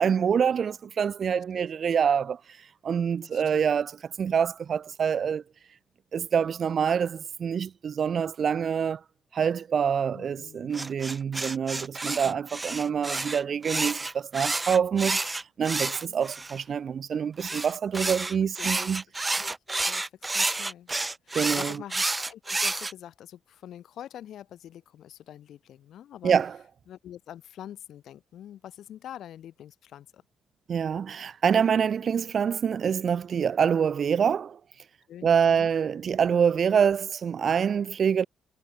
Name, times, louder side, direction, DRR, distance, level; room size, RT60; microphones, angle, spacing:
voice 1, 0.0-2.4 2.8-5.4 6.1-9.0 9.3-15.3 15.6-19.0 21.3-21.8 26.2-26.6 30.7-34.6 35.2-38.3, right 7 dB, 50° right, 3.0 m, -26 dB
voice 2, 1.3-1.7 3.2-3.6 10.1-10.7 12.2-12.4 15.9-16.2 18.6-18.9 19.4-20.9 21.3-26.4 26.9-30.2 35.1-35.7, left 11 dB, 70° left, 5.5 m, -45 dB
sound 1, 10.7-16.6 17.4-22.9, right 2 dB, 20° right, 3.7 m, -30 dB
cardioid pair, 90°, 0 cm